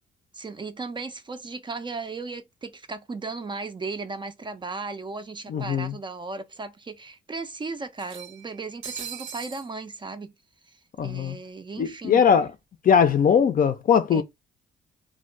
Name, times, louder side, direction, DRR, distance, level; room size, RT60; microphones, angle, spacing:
voice 1, 0.3-10.3 10.7-12.3 14.1-14.2, right 3 dB, 25° right, 0.4 m, -36 dB
sound 1, 4.6-4.7 4.9-5.0 6.1-6.2 6.6-6.7 8.0-9.7, right 8 dB, 70° right, 0.6 m, -40 dB
voice 2, 5.5-5.9 11.0-11.4 11.8-12.5 12.8-14.2, left 7 dB, 45° left, 0.5 m, -20 dB
2.6 x 2.1 x 3.1 m
cardioid pair, 90°, 20 cm